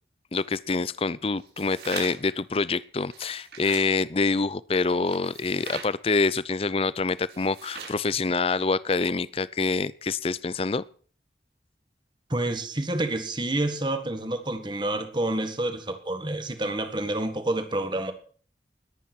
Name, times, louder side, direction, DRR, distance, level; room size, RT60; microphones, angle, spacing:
voice 1, 0.3-10.8, left 4 dB, 35° left, 19 dB, 0.5 m, -26 dB
sound 1, 1.4-2.3 3.0-3.9 5.1-5.9 7.2-8.0, right 5 dB, 75° right, 7.9 m, -41 dB
voice 2, 12.3-18.1, right 1 dB, 25° right, 7 dB, 1.8 m, -28 dB
20.5 x 9.1 x 4.5 m, 0.43 s
head